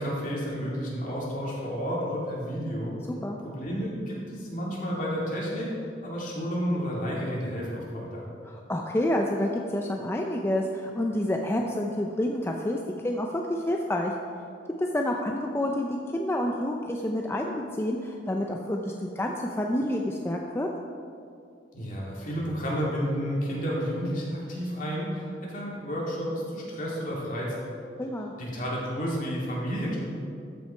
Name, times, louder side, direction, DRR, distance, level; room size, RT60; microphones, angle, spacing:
voice 1, 0.0-2.9 3.4-5.7 6.0-8.2 21.7-27.8 28.4-30.0, equal, 50° left, -5 dB, 2.6 m, -31 dB
voice 2, 3.1-3.4 8.5-12.8 13.0-14.1 14.8-20.7 28.0-28.3, left 1 dB, 15° left, 1 dB, 0.5 m, -28 dB
13.0 x 5.9 x 4.4 m, 2.4 s
head